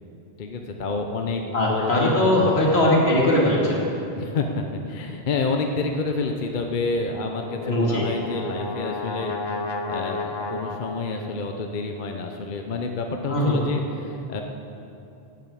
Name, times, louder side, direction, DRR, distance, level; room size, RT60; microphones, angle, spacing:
voice 1, 0.4-2.8 4.1-14.4, left 3 dB, 55° left, 4 dB, 0.9 m, -29 dB
voice 2, 1.5-3.8 7.6-8.0 13.3-13.6, left 1 dB, 80° left, -4 dB, 2.5 m, -20 dB
Brass instrument, 7.1-11.4, left 3 dB, 30° left, 0.5 m, -32 dB
10.5 x 7.2 x 8.3 m, 2.8 s
omnidirectional pair, 1.1 m